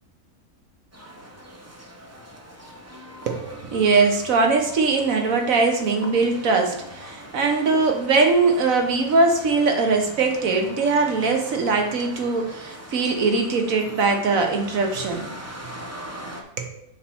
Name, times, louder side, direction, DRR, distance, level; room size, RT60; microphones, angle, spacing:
sound 1, 0.9-16.4, equal, 20° right, 0.4 m, -41 dB
voice 1, 3.2-15.3 16.6-16.7, right 4 dB, 70° right, 4 dB, 1.4 m, -21 dB
6.9 x 4.7 x 4.4 m, 0.80 s
omnidirectional pair, 1.5 m